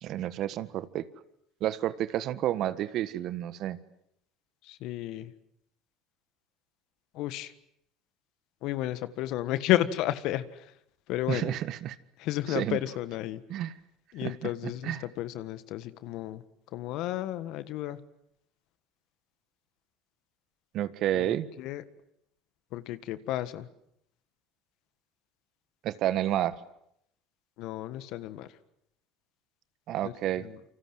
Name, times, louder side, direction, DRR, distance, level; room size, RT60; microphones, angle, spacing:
voice 1, 0.0-1.1 1.6-3.8 11.3-12.0 12.5-12.8 13.5-13.7 14.2-14.5 14.8-15.0 20.7-21.5 25.8-26.5 29.9-30.5, right 12 dB, 60° right, 14 dB, 1.5 m, -30 dB
voice 2, 4.6-5.3 7.1-7.5 8.6-10.7 11.1-11.5 12.2-13.4 14.1-16.4 16.7-18.0 21.1-21.8 22.7-23.7 27.6-28.5 30.0-30.6, left 14 dB, 65° left, 13 dB, 1.6 m, -32 dB
28.5 x 25.0 x 7.8 m, 0.75 s
hypercardioid pair, 80°, 0 cm